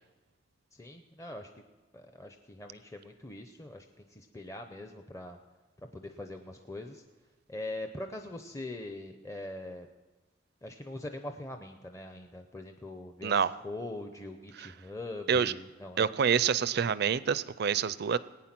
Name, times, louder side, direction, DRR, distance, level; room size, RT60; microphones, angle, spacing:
voice 1, 0.7-1.5 1.9-5.4 5.9-7.0 7.5-9.9 10.6-13.3 13.6-16.1, left 2 dB, 15° left, 5 dB, 0.6 m, -42 dB
voice 2, 16.0-18.2, right 7 dB, 55° right, 17 dB, 0.4 m, -27 dB
19.0 x 9.1 x 5.9 m, 1.2 s
head